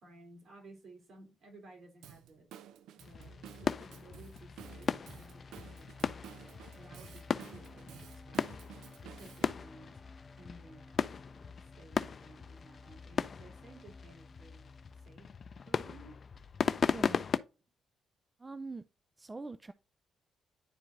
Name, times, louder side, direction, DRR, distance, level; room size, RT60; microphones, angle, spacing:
voice 1, 0.0-2.4 3.0-6.3 6.7-8.5 9.0-10.0 10.4-14.7 15.0-15.3 15.7-16.2 16.7-16.9, right 2 dB, 60° right, 3.3 m, -56 dB
Drum kit / Drum, 2.0-9.5, right 10 dB, 80° right, 0.4 m, -53 dB
sound 1, 3.0-17.4, left 6 dB, 45° left, 0.4 m, -37 dB
sound 2, 4.6-15.1, left 1 dB, 15° left, 2.7 m, -60 dB
voice 2, 18.4-18.8 19.2-19.7, right 3 dB, 25° right, 0.4 m, -43 dB
10.0 x 4.5 x 2.5 m
cardioid pair, 75°, 0 cm